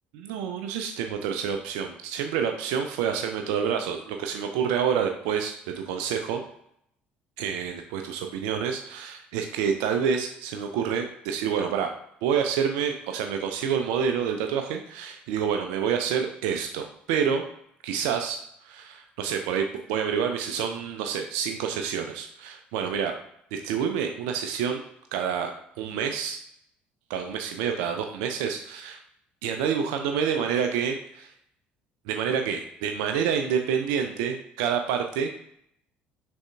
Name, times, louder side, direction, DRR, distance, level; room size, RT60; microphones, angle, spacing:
voice 1, 0.1-6.4 7.4-11.9 12.2-17.4 17.8-23.1 23.5-24.8 25.1-25.5 25.8-26.4 27.1-29.0 29.4-31.3 32.1-35.4, right 7 dB, 60° right, 4 dB, 0.4 m, -28 dB
6.2 x 3.4 x 2.3 m, 0.72 s
figure-of-eight pair, 55°, 5 cm